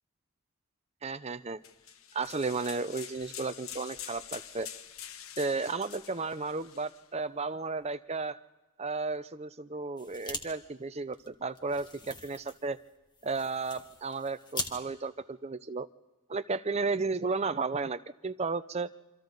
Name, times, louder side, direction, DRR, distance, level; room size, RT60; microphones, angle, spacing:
voice 1, 1.0-1.6 2.1-4.7 5.4-8.4 8.8-12.8 13.2-15.9 16.3-18.9, right 4 dB, 30° right, 11 dB, 0.6 m, -33 dB
sound 1, 1.6-7.0, left 9 dB, 70° left, 1.0 m, -46 dB
sound 2, 10.0-10.4 10.7-10.8 11.1-14.7, left 2 dB, 20° left, 1.7 m, -41 dB
28.0 x 25.0 x 4.0 m, 1.1 s
head